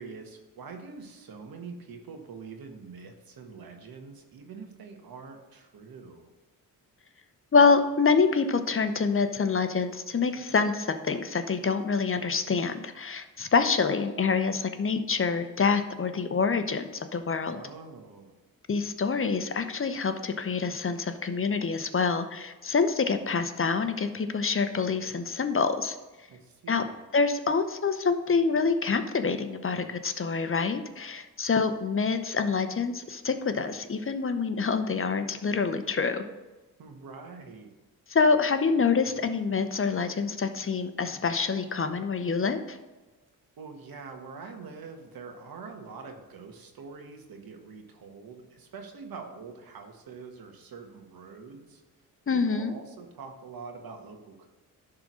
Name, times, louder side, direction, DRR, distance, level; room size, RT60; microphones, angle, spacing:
voice 1, 0.0-6.3 17.4-18.3 26.3-27.0 36.8-37.7 43.6-51.8 52.3-54.5, right 4 dB, 70° right, 4 dB, 1.5 m, -45 dB
voice 2, 7.5-17.6 18.7-26.0 26.7-26.8 27.1-36.2 38.1-42.8 52.3-52.7, left 5 dB, 35° left, 9 dB, 0.8 m, -26 dB
11.0 x 3.8 x 6.2 m, 1.2 s
cardioid pair, 70°, 36 cm